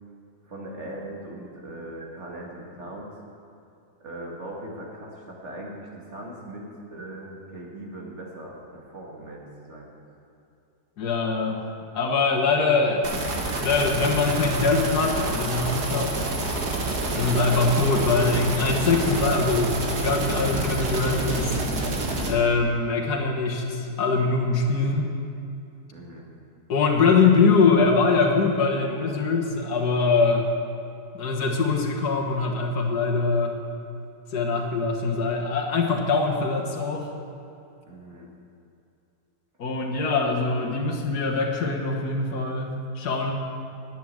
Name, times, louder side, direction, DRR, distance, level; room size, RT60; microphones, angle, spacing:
voice 1, 0.4-3.2 4.0-9.9 25.9-26.3 37.8-38.3, right 1 dB, 45° right, -2 dB, 2.3 m, -39 dB
voice 2, 11.0-11.6 11.9-13.1 13.6-16.2 17.1-21.6 22.3-25.1 26.7-30.4 31.1-33.6 34.3-37.1 39.6-43.3, left 4 dB, 85° left, 0 dB, 1.9 m, -23 dB
sound 1, 13.0-22.3, right 2 dB, 80° right, 2.2 m, -28 dB
11.0 x 9.6 x 7.7 m, 2.7 s
omnidirectional pair, 1.7 m